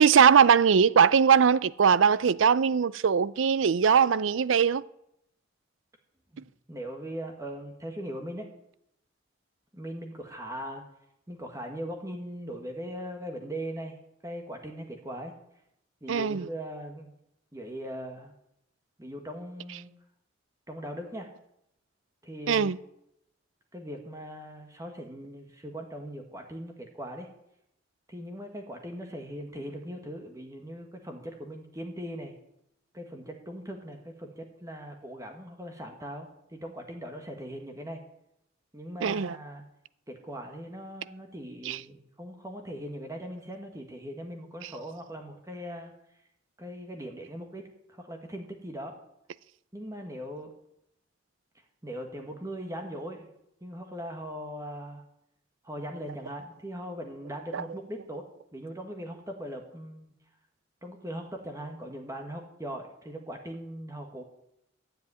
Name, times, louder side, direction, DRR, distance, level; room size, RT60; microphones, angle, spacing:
voice 1, 0.0-4.8 16.1-16.5 22.5-22.8 39.0-39.4 41.6-41.8 44.6-44.7 57.5-57.6, right 7 dB, 80° right, 0.5 m, -21 dB
voice 2, 6.7-8.5 9.7-10.8 11.3-14.0 14.2-15.3 16.0-17.1 17.5-18.3 19.0-19.9 20.7-21.3 22.2-22.7 23.7-27.3 28.1-32.3 32.9-38.0 38.7-39.6 40.1-45.9 46.6-48.9 49.7-50.5 51.8-53.3 53.6-55.0 55.6-58.3 58.5-60.1 60.8-64.2, equal, 15° right, 1.5 m, -40 dB
12.5 x 7.8 x 9.6 m
head